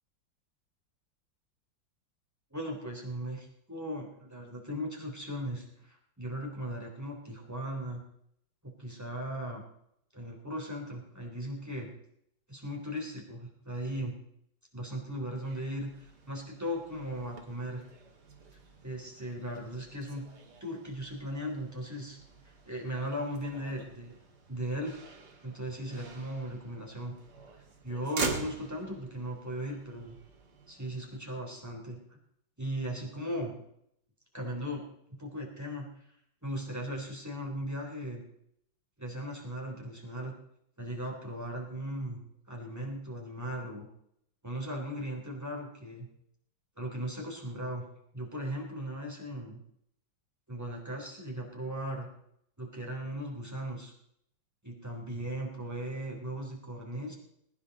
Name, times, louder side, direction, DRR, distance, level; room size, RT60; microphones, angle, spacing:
voice 1, 2.5-8.0 8.8-9.6 10.1-11.9 12.5-14.1 14.7-17.8 18.8-20.2 20.6-22.2 22.6-24.1 24.5-24.9 25.4-27.1 27.8-30.2 30.7-32.2 32.6-33.5 34.3-34.8 35.1-35.9 36.4-38.2 39.0-40.3 40.8-42.2 42.5-43.9 44.4-46.1 46.8-47.8 48.1-49.6 50.5-52.1 52.6-53.9 54.6-57.1, equal, 10° right, -1 dB, 3.3 m, -37 dB
Motor vehicle (road), 15.4-31.2, right 4 dB, 60° right, 2.4 m, -44 dB
22.0 x 10.0 x 4.1 m, 0.73 s
omnidirectional pair, 2.0 m